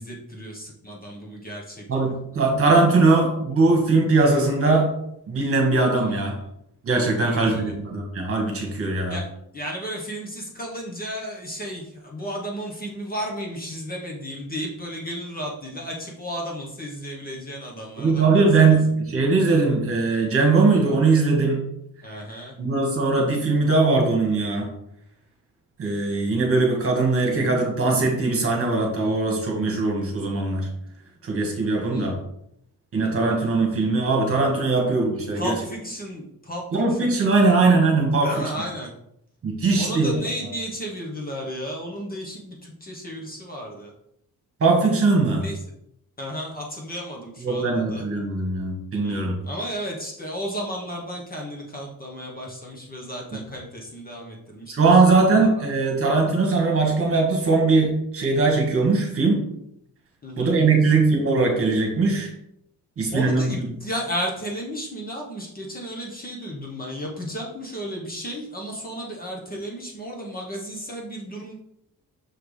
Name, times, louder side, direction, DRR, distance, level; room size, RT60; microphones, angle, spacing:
voice 1, 0.0-2.1 5.9-6.2 7.2-7.7 9.1-9.3 9.5-18.5 22.0-22.6 31.9-32.2 35.3-37.6 38.2-38.9 39.8-43.9 45.4-45.6 46.2-48.1 49.0-55.0 55.4-55.6 60.2-60.6 63.1-71.6, equal, 25° left, -1 dB, 1.1 m, -33 dB
voice 2, 1.9-4.9 5.3-6.3 6.8-9.2 18.0-21.6 22.6-24.7 25.8-30.7 31.2-32.2 32.9-35.5 36.7-38.5 39.4-40.1 44.6-45.4 47.4-49.4 54.7-59.4 60.4-62.3 63.0-63.5, right 3 dB, 35° right, 1 dB, 1.6 m, -20 dB
6.5 x 5.8 x 3.3 m, 0.76 s
wide cardioid pair, 180°, 38 cm